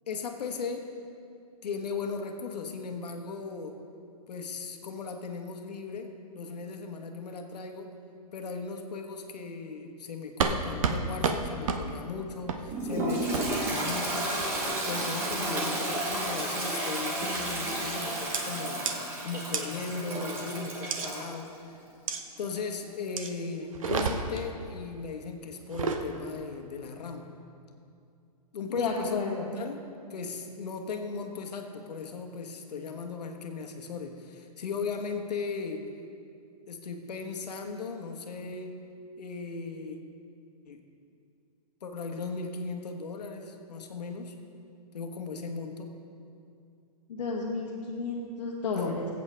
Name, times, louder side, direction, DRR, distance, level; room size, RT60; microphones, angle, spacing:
voice 1, 0.1-0.9 1.6-3.8 4.3-6.1 6.3-7.9 8.3-14.3 14.9-18.8 19.2-21.5 22.4-27.3 28.5-35.9 36.7-38.8 39.2-40.0 40.7-40.8 41.8-44.3 44.9-45.9 48.7-49.0, left 4 dB, 80° left, 4 dB, 1.3 m, -37 dB
sound 1, 10.4-10.6 10.8-11.0 11.2-11.4 11.7-11.8 12.5-12.6 13.3-13.4 14.4-14.8 15.3-15.7 16.1-16.4 17.3-17.5 18.3-18.4 18.9-19.0 19.5-19.6 20.9-21.1 22.1-22.2 23.2-23.3 23.7-24.5 25.6-26.0, right 5 dB, 55° right, 0.9 m, -30 dB
Toilet flush, 12.7-21.3, right 1 dB, 10° right, 0.9 m, -32 dB
voice 2, 28.7-29.5 47.1-49.1, left 4 dB, 55° left, -7 dB, 1.7 m, -32 dB
19.0 x 8.4 x 3.3 m, 2.5 s
hypercardioid pair, 180°, 20 cm